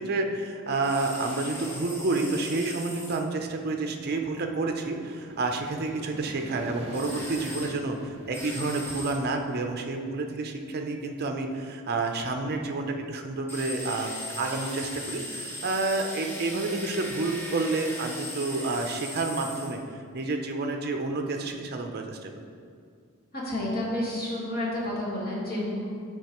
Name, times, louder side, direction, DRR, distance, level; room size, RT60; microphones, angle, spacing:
voice 1, 0.0-19.8 20.1-22.4, right 3 dB, 45° right, 4 dB, 0.5 m, -29 dB
sound 1, 0.8-3.2 6.9-7.7 8.3-9.2 13.5-19.8, left 1 dB, 10° left, 0.9 m, -38 dB
sound 2, 4.5-11.0, right 1 dB, 25° right, 1.1 m, -46 dB
voice 2, 23.3-25.8, left 1 dB, 45° left, -5 dB, 1.6 m, -30 dB
9.0 x 4.6 x 3.0 m, 2.2 s
head